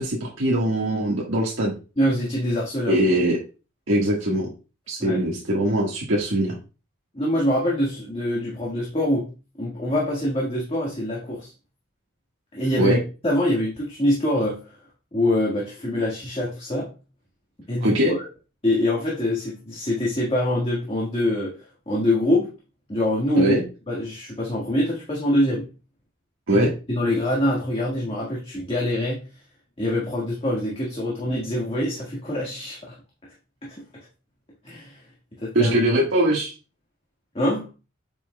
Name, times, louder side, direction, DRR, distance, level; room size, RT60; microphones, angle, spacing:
voice 1, 0.0-1.7 2.9-3.4 3.9-4.5 4.9-6.6 12.8-13.0 17.8-18.1 23.4-23.6 26.5-26.7 35.5-36.5, right 1 dB, 75° right, -3 dB, 1.6 m, -21 dB
voice 2, 2.0-3.0 5.0-5.2 7.1-9.3 9.6-11.5 12.5-13.0 13.2-14.7 15.1-16.9 17.7-18.3 18.6-21.6 21.9-22.5 22.9-23.5 23.9-25.6 26.5-29.3 29.8-33.0 33.6-33.8 34.6-35.0 35.3-35.7 37.3-37.6, left 1 dB, 30° left, -5 dB, 1.7 m, -24 dB
8.5 x 6.1 x 2.2 m, 0.32 s
head